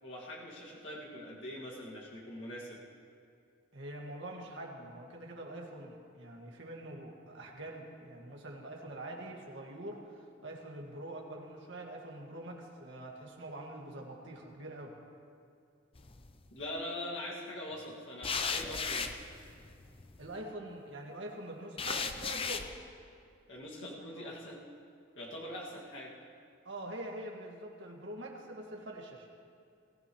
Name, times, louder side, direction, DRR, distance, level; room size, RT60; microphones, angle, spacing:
voice 1, 0.0-2.8 16.5-19.1 23.5-24.6 25.2-26.1, left 1 dB, 65° left, -4 dB, 2.2 m, -43 dB
voice 2, 3.7-14.9 20.2-22.7 23.8-24.3 26.6-29.3, right 1 dB, 65° right, 0 dB, 2.0 m, -45 dB
sound 1, 16.0-16.5 18.2-20.3 21.8-22.7, left 5 dB, 30° left, 0.6 m, -36 dB
21.0 x 14.5 x 3.2 m, 2.4 s
head